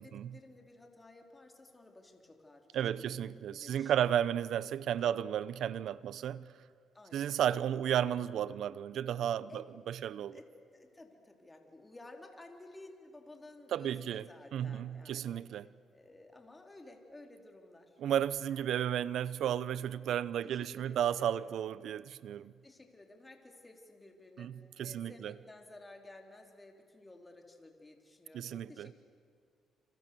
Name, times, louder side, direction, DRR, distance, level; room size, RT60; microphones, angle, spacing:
voice 1, 0.0-3.1 3.5-4.1 5.0-5.5 6.9-7.7 9.5-9.6 10.3-15.4 15.9-18.0 20.4-21.7 22.6-28.9, left 2 dB, 20° left, 3.6 m, -54 dB
voice 2, 2.7-6.5 7.1-10.4 13.7-14.2 14.5-15.7 18.0-22.5 24.4-25.3 28.3-28.9, right 10 dB, 75° right, 0.7 m, -33 dB
29.0 x 27.0 x 6.9 m
cardioid pair, 90°, 0 cm